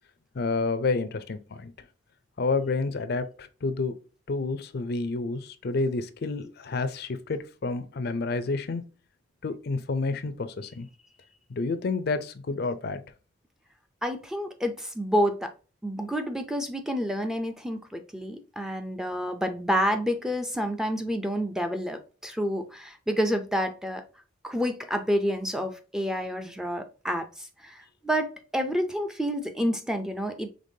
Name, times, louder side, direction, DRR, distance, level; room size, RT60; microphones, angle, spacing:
voice 1, 0.3-1.7 2.4-3.9 4.3-8.8 9.4-10.9 11.5-13.0, left 3 dB, 55° left, 0.5 m, -29 dB
voice 2, 14.0-15.5 15.8-24.0 24.4-30.5, equal, 5° right, 0.5 m, -29 dB
5.2 x 3.4 x 2.7 m
head